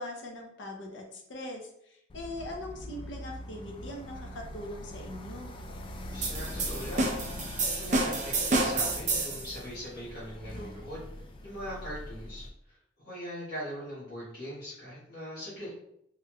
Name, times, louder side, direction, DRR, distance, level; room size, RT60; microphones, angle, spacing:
voice 1, 0.0-5.5, left 1 dB, 85° left, 2 dB, 0.7 m, -41 dB
sound 1, 2.1-12.5, left 1 dB, 30° left, 0.3 m, -42 dB
voice 2, 6.1-11.0 11.4-12.8 13.0-15.8, equal, 60° left, -9 dB, 1.4 m, -41 dB
sound 2, 6.2-9.5, right 2 dB, 40° right, 0.6 m, -29 dB
3.5 x 3.0 x 2.3 m, 0.76 s
head